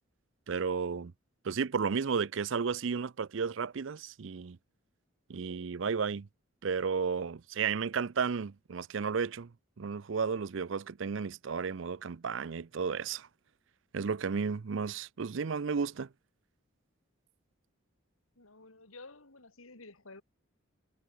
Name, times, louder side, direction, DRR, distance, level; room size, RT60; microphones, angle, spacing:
voice 1, 0.5-1.1 1.4-4.6 5.3-6.3 6.6-9.5 9.8-13.3 13.9-16.1, right 5 dB, 65° right, 0.5 m, -33 dB
voice 2, 18.4-20.2, left 3 dB, 85° left, 3.4 m, -52 dB
head